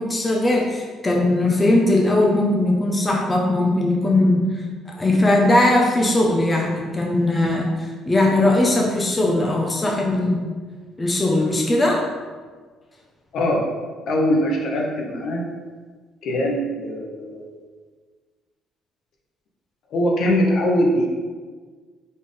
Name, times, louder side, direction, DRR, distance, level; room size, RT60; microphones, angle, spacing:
voice 1, 0.0-4.5 4.9-10.4 11.0-12.1, left 1 dB, 20° left, -1 dB, 0.6 m, -19 dB
voice 2, 13.3-13.6 14.1-15.4 16.2-17.5 19.9-21.1, equal, 65° left, -1 dB, 0.9 m, -21 dB
4.3 x 3.5 x 3.5 m, 1.5 s
cardioid pair, 100°, 0 cm